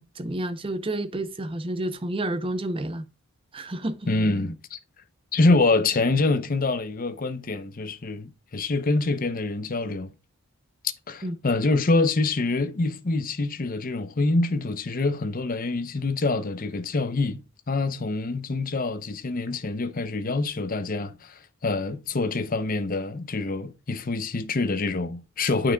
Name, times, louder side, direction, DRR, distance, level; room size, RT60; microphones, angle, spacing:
voice 1, 0.0-3.1 3.5-4.0 11.2-11.3, right 1 dB, 25° right, 0.6 m, -30 dB
voice 2, 4.1-4.8 5.3-10.1 11.1-17.4 17.7-25.7, left 3 dB, 40° left, 0.7 m, -25 dB
9.0 x 5.8 x 2.3 m
head